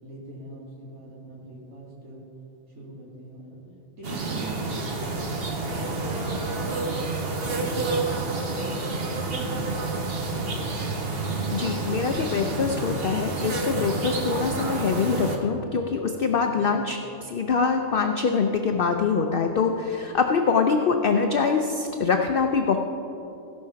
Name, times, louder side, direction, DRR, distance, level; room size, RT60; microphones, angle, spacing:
voice 1, 0.0-2.2 2.7-3.6 4.0-6.9 7.2-10.2 16.4-17.0, right 1 dB, 75° right, -6 dB, 3.4 m, -43 dB
sound 1, 4.0-15.4, right 3 dB, 45° right, 1.3 m, -29 dB
voice 2, 11.5-22.8, left 5 dB, 55° left, 5 dB, 0.6 m, -24 dB
16.5 x 5.7 x 5.7 m, 2.9 s
omnidirectional pair, 1.5 m